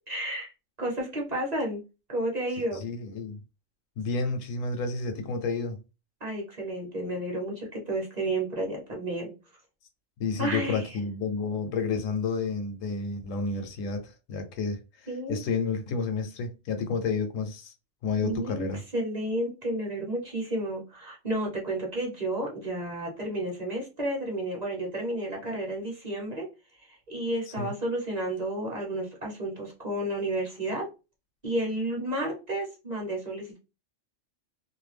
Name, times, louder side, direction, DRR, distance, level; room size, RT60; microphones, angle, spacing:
voice 1, 0.1-0.5 0.8-1.8 2.1-2.8 6.2-9.3 10.4-11.0 15.1-15.4 18.2-18.7 18.9-26.5 26.9-30.9 31.4-33.6, right 1 dB, 35° right, 0.9 m, -31 dB
voice 2, 2.7-3.4 4.0-5.8 10.2-17.7 18.0-18.8 27.6-27.7, left 4 dB, 80° left, 1.0 m, -30 dB
2.6 x 2.2 x 3.2 m
omnidirectional pair, 1.3 m